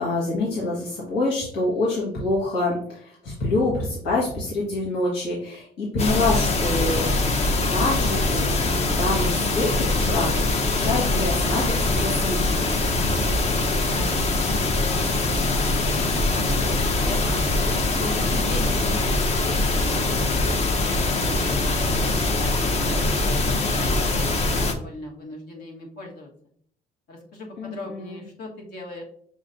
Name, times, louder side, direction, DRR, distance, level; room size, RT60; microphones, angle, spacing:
voice 1, 0.0-7.1 7.4-12.4 27.6-28.2, left 2 dB, 85° left, -5 dB, 1.5 m, -26 dB
sound 1, 6.0-24.7, left 2 dB, 40° left, 0.7 m, -23 dB
voice 2, 13.2-17.4 17.8-19.6 19.9-26.3 27.1-29.0, left 2 dB, 70° left, 0 dB, 1.4 m, -39 dB
6.2 x 3.1 x 2.6 m, 0.62 s
cardioid pair, 110°, 17 cm